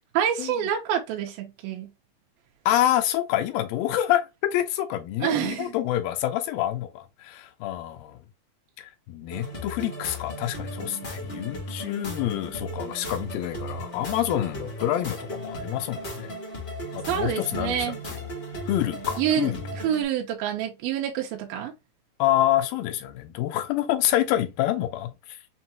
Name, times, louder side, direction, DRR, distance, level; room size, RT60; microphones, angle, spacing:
voice 1, 0.2-1.9 5.2-5.8 17.1-18.0 19.2-19.5 19.8-21.7, right 9 dB, 90° right, 2.6 m, -27 dB
voice 2, 2.7-8.2 8.8-16.3 16.9-18.2 18.7-19.6 22.2-25.4, left 12 dB, 85° left, 2.6 m, -27 dB
sound 1, 9.3-20.0, equal, 55° left, 0.6 m, -36 dB
6.4 x 2.3 x 2.8 m
omnidirectional pair, 4.1 m